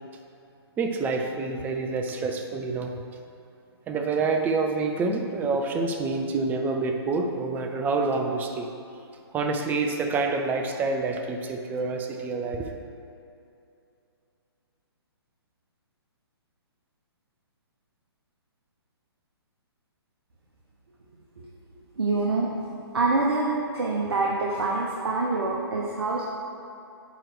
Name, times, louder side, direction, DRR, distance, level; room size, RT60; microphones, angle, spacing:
voice 1, 0.8-2.9 3.9-8.7 9.3-12.7, right 3 dB, 15° right, 3 dB, 0.5 m, -27 dB
voice 2, 22.0-22.5 22.9-23.5 23.7-26.2, right 3 dB, 70° right, -2 dB, 1.0 m, -25 dB
9.2 x 3.1 x 6.1 m, 2.6 s
figure-of-eight pair, 130°, 14 cm